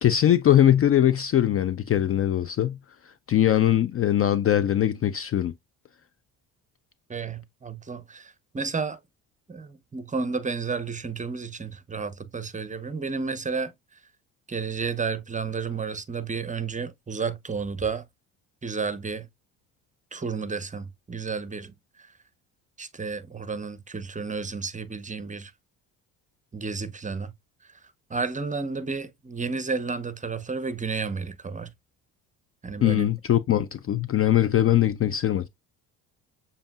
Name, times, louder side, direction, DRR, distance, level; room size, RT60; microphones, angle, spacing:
voice 1, 0.0-2.8 3.3-5.5 32.8-35.5, left 11 dB, 35° left, 0.4 m, -21 dB
voice 2, 7.1-9.0 9.5-13.7 14.5-18.0 18.6-19.3 20.1-21.7 22.8-25.5 26.5-27.3 28.1-31.7 32.6-33.1, right 4 dB, 20° right, 0.7 m, -31 dB
6.9 x 2.8 x 2.3 m
hypercardioid pair, 60°, 41 cm